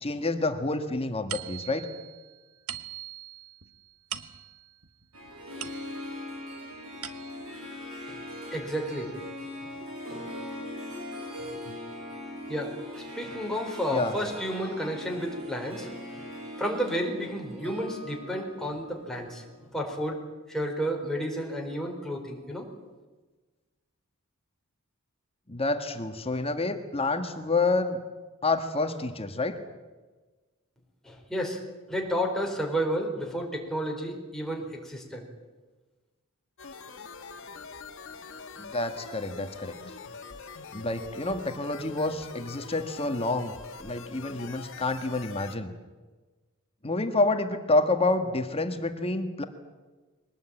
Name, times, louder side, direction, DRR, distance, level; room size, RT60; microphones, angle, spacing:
voice 1, 0.0-1.9 11.7-11.8 13.9-14.1 25.5-28.0 28.4-29.6 38.6-39.8 40.7-43.5 43.8-45.7 46.8-49.4, left 2 dB, 25° left, 8 dB, 1.6 m, -28 dB
sound 1, 1.3-6.3 6.7-7.6, right 10 dB, 90° right, 1.4 m, -42 dB
Harp, 5.1-19.6, left 1 dB, 70° right, 7.8 m, -41 dB
voice 2, 8.5-9.2 9.6-9.7 10.1-10.3 11.4-11.5 12.5-12.7 13.1-15.9 16.6-20.2 20.5-22.7 31.0-31.6 31.9-35.2, equal, ahead, 0 dB, 4.6 m, -31 dB
sound 2, 36.6-45.6, left 4 dB, 60° left, 1.7 m, -44 dB
23.0 x 19.0 x 9.0 m, 1.3 s
head